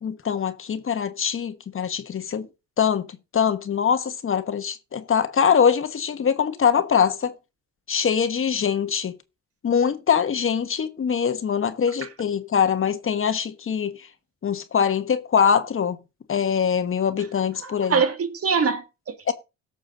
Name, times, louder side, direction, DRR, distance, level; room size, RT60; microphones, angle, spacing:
voice 1, 0.0-2.5 2.8-7.3 7.9-9.1 9.6-14.1 14.4-16.0 16.3-18.0 19.3-19.4, left 7 dB, 45° left, 1.2 m, -23 dB
voice 2, 17.6-19.3, right 5 dB, 50° right, 1.9 m, -24 dB
17.0 x 6.9 x 3.9 m
cardioid pair, 90°, 30 cm